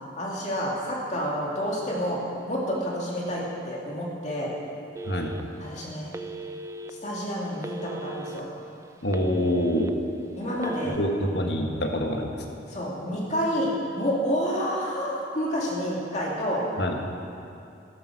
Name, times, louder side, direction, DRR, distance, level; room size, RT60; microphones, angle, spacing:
voice 1, 0.2-2.2 2.5-4.5 5.6-6.1 7.0-8.5 10.4-11.0 12.7-13.7 13.9-16.6, equal, 40° left, -3 dB, 2.5 m, -29 dB
Telephone, 5.0-5.7 6.1-6.9 7.6-8.4 8.8-9.9 10.5-11.0, right 2 dB, 15° right, 0.4 m, -37 dB
voice 2, 9.0-9.9 11.0-12.4 16.8-17.0, equal, 65° left, 2 dB, 1.4 m, -26 dB
12.5 x 11.0 x 6.3 m, 2.6 s
head